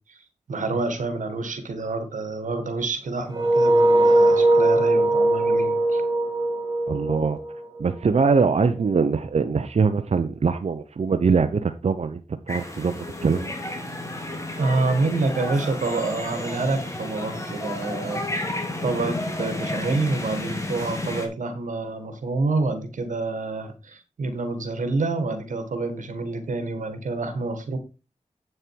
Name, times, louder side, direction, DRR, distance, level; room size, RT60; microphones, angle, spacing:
voice 1, 0.5-6.0 14.6-18.2 18.8-27.8, right 3 dB, 85° right, 9 dB, 1.7 m, -27 dB
sound 1, 3.3-8.1, right 1 dB, 30° right, 3.2 m, -20 dB
voice 2, 6.9-7.4 7.8-12.2 12.5-13.5, right 5 dB, 60° right, 9 dB, 0.8 m, -22 dB
sound 2, 12.5-21.3, left 1 dB, 25° left, 2.9 m, -31 dB
8.5 x 6.5 x 4.6 m, 0.31 s
cardioid pair, 55°, 13 cm